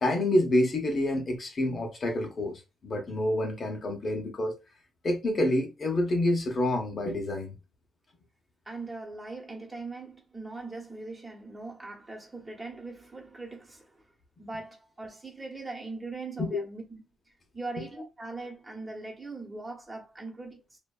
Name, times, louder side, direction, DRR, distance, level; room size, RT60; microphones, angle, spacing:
voice 1, 0.0-4.6 5.0-7.5 16.4-16.6, left 1 dB, 40° left, 0.6 m, -28 dB
voice 2, 8.6-14.0 14.4-17.0 17.5-20.8, right 3 dB, 25° right, 0.9 m, -40 dB
2.5 x 2.1 x 2.3 m
cardioid pair, 90°, 0 cm